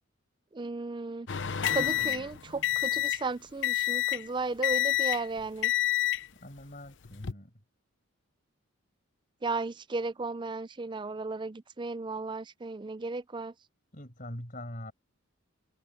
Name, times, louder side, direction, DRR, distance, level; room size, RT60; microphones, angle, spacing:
voice 1, 0.5-1.3 1.7-5.7 9.4-13.5, right 3 dB, 20° right, 0.4 m, -35 dB
sound 1, 1.3-3.3 3.6-4.3 4.6-5.3 5.6-6.3 7.1-7.3, left 12 dB, 55° left, 0.8 m, -28 dB
voice 2, 6.4-7.5 13.9-14.9, left 1 dB, 40° left, 6.4 m, -43 dB
head